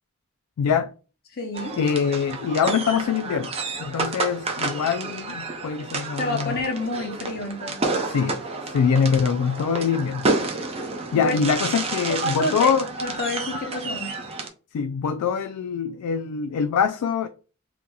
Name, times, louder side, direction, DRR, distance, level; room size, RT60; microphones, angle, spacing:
voice 1, 0.6-0.9 1.8-3.5 3.8-6.6 8.1-10.3 11.1-12.9 14.7-17.3, left 6 dB, 85° left, 0.3 m, -24 dB
voice 2, 1.3-1.8 6.2-8.0 11.1-11.4 12.2-12.7 13.0-14.1, left 1 dB, 45° left, 0.9 m, -29 dB
sound 1, 1.5-14.5, right 3 dB, 25° right, 0.5 m, -30 dB
3.8 x 2.9 x 2.3 m
head